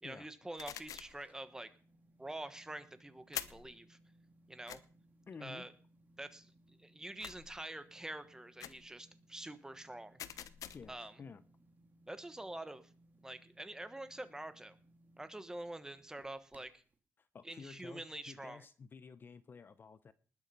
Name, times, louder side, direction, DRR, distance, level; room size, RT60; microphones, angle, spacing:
voice 1, 0.0-1.7 2.2-4.0 4.5-4.8 5.4-5.7 6.2-10.2 10.9-11.1 12.1-12.9 13.2-14.8 15.2-16.8 17.4-18.6, right 1 dB, 10° right, 12 dB, 1.2 m, -46 dB
sound 1, 0.6-1.2 3.3-3.7 4.7-4.8 7.2-7.6 8.6-8.9 10.2-11.0, left 10 dB, 80° left, 0.8 m, -45 dB
sound 2, 0.7-17.0, right 1 dB, 30° right, 2.6 m, -67 dB
voice 2, 5.3-5.7 10.7-11.4 17.2-20.1, left 5 dB, 40° left, 14 dB, 0.8 m, -52 dB
19.5 x 7.2 x 5.4 m, 0.40 s
cardioid pair, 130°, 6 cm